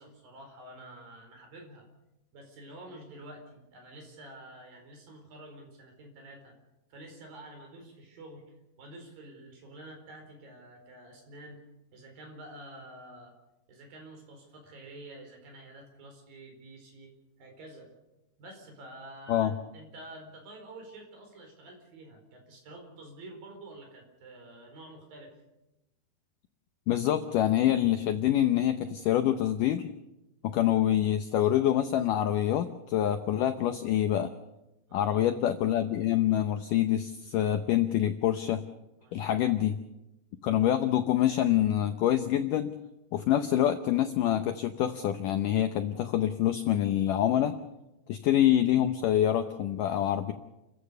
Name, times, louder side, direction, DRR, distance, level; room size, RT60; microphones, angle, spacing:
voice 1, 0.0-1.9 2.3-6.5 6.9-8.5 8.8-11.6 11.9-13.3 13.7-17.1 17.4-17.9 18.4-25.4 34.9-35.3 39.0-39.6, right 1 dB, 60° right, 3 dB, 6.1 m, -49 dB
voice 2, 26.9-29.9 30.4-34.3 34.9-38.6 39.1-39.8 40.4-42.7 43.1-47.6 48.1-50.3, left 11 dB, 75° left, 9 dB, 1.9 m, -26 dB
29.5 x 15.0 x 6.9 m, 0.96 s
omnidirectional pair, 4.7 m